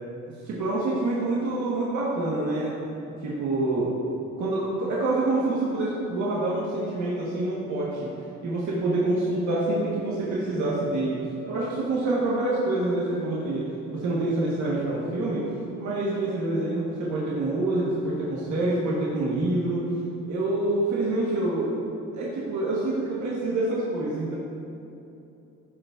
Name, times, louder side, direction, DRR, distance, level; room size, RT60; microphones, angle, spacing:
voice 1, 0.4-2.7 3.2-3.9 4.4-8.1 8.4-11.2 11.5-13.6 13.9-15.5 15.8-19.9 20.3-21.7 22.1-24.4, right 2 dB, 70° right, -6 dB, 1.4 m, -26 dB
12.5 x 5.3 x 2.5 m, 2.8 s
cardioid pair, 90°, 30 cm